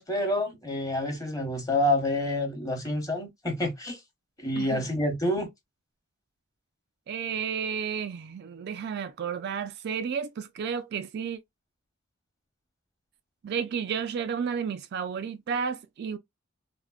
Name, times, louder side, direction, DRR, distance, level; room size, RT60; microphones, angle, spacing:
voice 1, 0.0-4.0 4.4-5.5, left 1 dB, 15° left, 0.9 m, -28 dB
voice 2, 7.1-11.4 13.4-16.2, right 6 dB, 50° right, 0.3 m, -32 dB
3.5 x 2.1 x 2.2 m
head